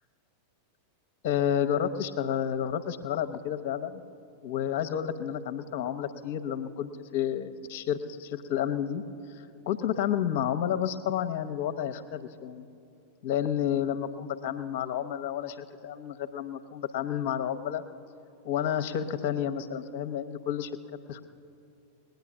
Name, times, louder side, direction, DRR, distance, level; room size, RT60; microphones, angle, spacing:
voice 1, 1.2-4.0 4.4-9.0 9.3-12.7 13.2-17.8 18.4-20.7 21.1-21.3, left 9 dB, 50° left, 11 dB, 0.8 m, -30 dB
20.5 x 9.2 x 7.2 m, 2.5 s
figure-of-eight pair, 90°, 0 cm